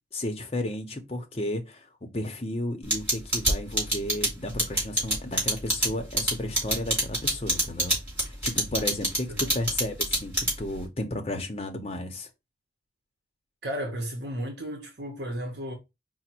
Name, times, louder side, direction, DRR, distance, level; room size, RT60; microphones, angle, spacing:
voice 1, 0.1-1.9 2.1-8.0 8.2-12.3, left 1 dB, 35° left, 0.7 m, -33 dB
sound 1, 2.9-10.8, right 1 dB, 10° right, 2.6 m, -25 dB
voice 2, 13.6-15.7, equal, 65° right, 0.8 m, -34 dB
5.0 x 2.1 x 4.3 m
head